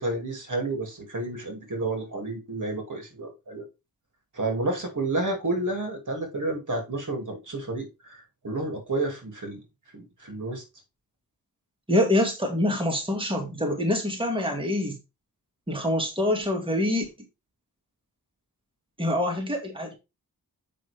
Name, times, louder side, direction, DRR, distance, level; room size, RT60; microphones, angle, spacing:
voice 1, 0.0-3.6 4.3-9.6 9.9-10.6, right 2 dB, 55° right, 2.5 m, -30 dB
voice 2, 11.9-15.0 15.7-17.1 19.0-20.0, left 1 dB, 15° right, 1.9 m, -25 dB
7.5 x 5.4 x 3.4 m
wide cardioid pair, 75°, 37 cm